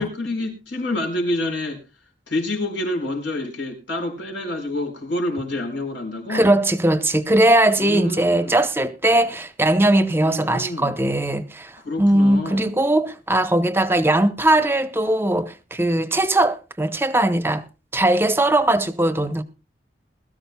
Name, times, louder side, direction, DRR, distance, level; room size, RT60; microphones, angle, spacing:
voice 1, 0.0-1.8 2.3-6.4 7.8-8.6 10.2-10.9 11.8-12.7, left 1 dB, 85° left, 4.7 m, -27 dB
voice 2, 6.3-17.6 17.9-19.4, right 1 dB, 15° right, 0.8 m, -19 dB
21.5 x 13.5 x 2.2 m
head